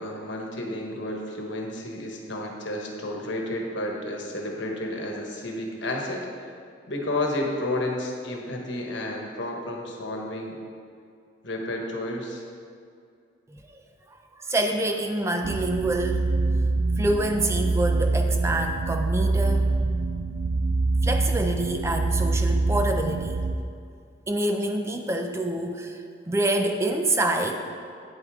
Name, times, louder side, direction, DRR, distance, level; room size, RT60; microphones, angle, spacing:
voice 1, 0.0-6.3 6.9-10.6 11.4-12.4, left 1 dB, 75° left, 1 dB, 1.2 m, -31 dB
voice 2, 13.5-13.8 14.3-16.3 17.0-19.7 21.0-23.4 24.3-27.6, right 1 dB, 15° right, 5 dB, 0.4 m, -26 dB
sound 1, 15.4-23.6, right 3 dB, 90° right, 0.5 m, -25 dB
9.1 x 8.1 x 3.6 m, 2.3 s
head